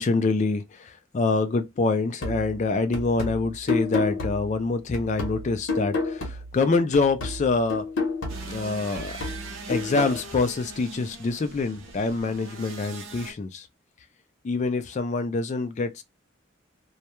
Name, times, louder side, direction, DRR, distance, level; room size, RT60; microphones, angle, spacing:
voice 1, 0.0-7.9 8.4-9.2 9.7-13.7 14.4-16.0, left 3 dB, 35° left, 0.3 m, -26 dB
sound 1, 2.2-6.6 6.9-10.2, left 3 dB, 65° left, 0.8 m, -31 dB
sound 2, 8.3-13.3, right 3 dB, 80° right, 0.6 m, -41 dB
2.2 x 2.1 x 2.9 m
head